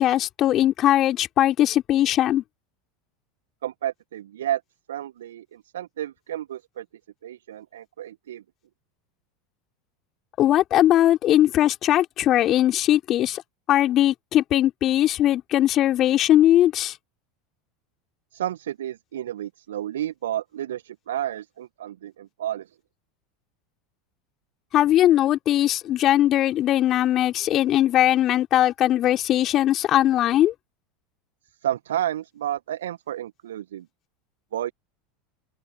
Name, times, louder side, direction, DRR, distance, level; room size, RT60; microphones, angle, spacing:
voice 1, 0.0-2.4 10.4-13.4 13.7-17.0 24.7-30.5, left 12 dB, 40° left, 3.6 m, -20 dB
voice 2, 3.6-4.6 4.9-6.9 7.2-8.4 18.3-22.8 31.6-33.9 34.5-34.7, right 12 dB, 70° right, 1.7 m, -31 dB
open air
figure-of-eight pair, 80°, 0 cm